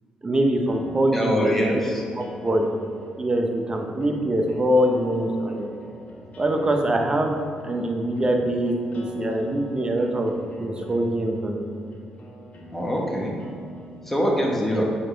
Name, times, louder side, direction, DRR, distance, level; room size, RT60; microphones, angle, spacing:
voice 1, 0.2-1.8 2.2-2.7 3.2-5.6 6.4-10.3 10.6-11.6 14.7-14.8, right 1 dB, 30° right, 2 dB, 0.9 m, -24 dB
sound 1, 0.7-14.3, equal, 50° left, 1.2 m, -41 dB
voice 2, 1.1-2.0 12.7-13.4 14.1-14.8, equal, 10° left, -2 dB, 1.2 m, -24 dB
7.6 x 4.2 x 3.3 m, 2.4 s
supercardioid pair, 65°, 3 cm